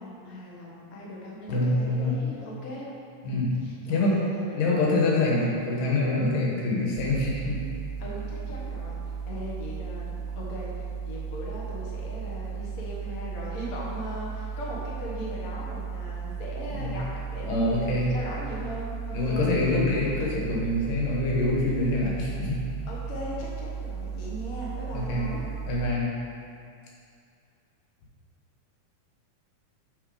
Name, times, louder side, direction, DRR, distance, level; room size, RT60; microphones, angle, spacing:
voice 1, 0.0-2.9 3.2-5.0 8.0-20.2 22.9-25.5, equal, 60° left, -5 dB, 0.9 m, -39 dB
voice 2, 1.5-2.1 3.2-3.5 3.9-4.2 4.6-7.6 16.7-16.9 17.5-18.1 19.1-22.6 24.9-25.3 25.7-26.1, left 2 dB, 90° left, -4 dB, 3.0 m, -25 dB
sound 1, 7.0-26.0, right 6 dB, 85° right, 2.2 m, -35 dB
7.9 x 4.5 x 4.9 m, 2.4 s
omnidirectional pair, 3.7 m